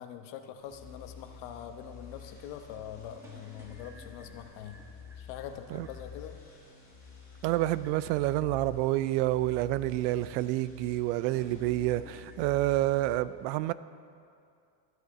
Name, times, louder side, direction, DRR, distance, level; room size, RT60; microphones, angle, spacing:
voice 1, 0.0-4.9 5.2-6.4, left 9 dB, 65° left, 1.0 m, -43 dB
sound 1, 0.6-12.4, right 1 dB, 5° right, 1.2 m, -59 dB
sound 2, 0.7-13.2, left 6 dB, 15° left, 2.5 m, -50 dB
voice 2, 7.4-13.7, right 16 dB, 80° right, 0.6 m, -28 dB
12.5 x 9.3 x 4.9 m
cardioid pair, 155°, 50 cm